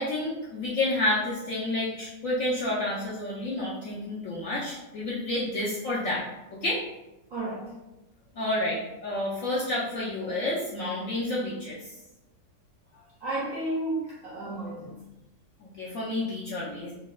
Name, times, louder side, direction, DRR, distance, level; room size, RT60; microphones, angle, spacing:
voice 1, 0.0-6.2 6.5-6.8 8.4-12.0 15.6-16.9, left 1 dB, 70° left, -6 dB, 0.8 m, -30 dB
voice 2, 7.3-7.7 13.2-14.9, right 1 dB, 75° right, -5 dB, 0.7 m, -32 dB
4.1 x 2.2 x 2.3 m, 0.99 s
omnidirectional pair, 1.9 m